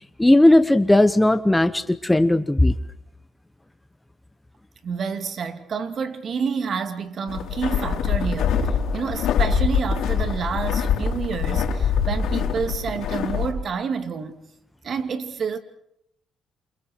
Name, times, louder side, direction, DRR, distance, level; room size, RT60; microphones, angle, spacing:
voice 1, 0.2-2.7, left 1 dB, 10° left, 1.0 m, -17 dB
voice 2, 4.8-14.4 14.8-15.6, right 6 dB, 55° right, 2.6 m, -29 dB
sound 1, 7.3-13.5, left 7 dB, 85° left, 4.2 m, -24 dB
28.5 x 27.5 x 4.6 m
cardioid pair, 90°, 0 cm